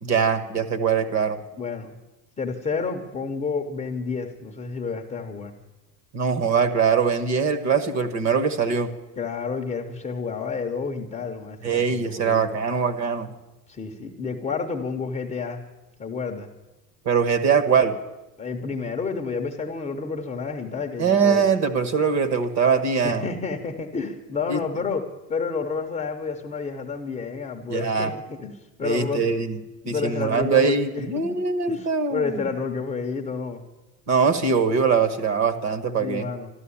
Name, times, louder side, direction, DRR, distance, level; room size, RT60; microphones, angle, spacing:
voice 1, 0.0-1.4 6.1-8.9 11.6-13.3 17.0-18.0 21.0-23.3 24.5-24.6 27.7-28.1 28.8-29.6 29.9-32.4 34.1-36.3, right 5 dB, 35° right, 11 dB, 1.3 m, -22 dB
voice 2, 1.6-1.9 2.4-5.5 9.2-12.5 13.7-15.6 16.0-16.5 18.4-21.4 23.0-25.0 25.3-28.5 28.8-29.2 29.8-33.6 36.0-36.5, left 5 dB, 15° left, 3 dB, 0.8 m, -30 dB
13.0 x 12.0 x 8.5 m, 1.0 s
supercardioid pair, 145°, 50 cm